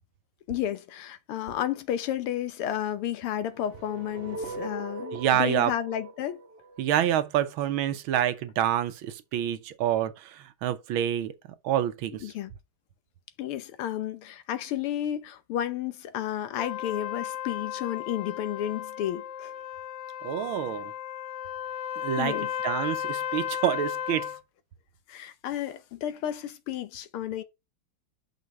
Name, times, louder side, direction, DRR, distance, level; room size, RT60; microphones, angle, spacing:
voice 1, 0.5-6.4 12.2-12.5 13.4-19.5 22.2-22.5 25.1-27.4, left 11 dB, 90° left, 1.8 m, -32 dB
sound 1, 3.4-7.5, right 3 dB, 35° right, 1.0 m, -40 dB
voice 2, 5.1-5.7 6.8-11.3 11.6-12.3 20.2-20.9 22.0-22.4 22.6-24.3, right 11 dB, 75° right, 1.5 m, -27 dB
Trumpet, 16.6-24.4, left 10 dB, 60° left, 1.5 m, -34 dB
6.2 x 5.4 x 4.6 m
omnidirectional pair, 2.4 m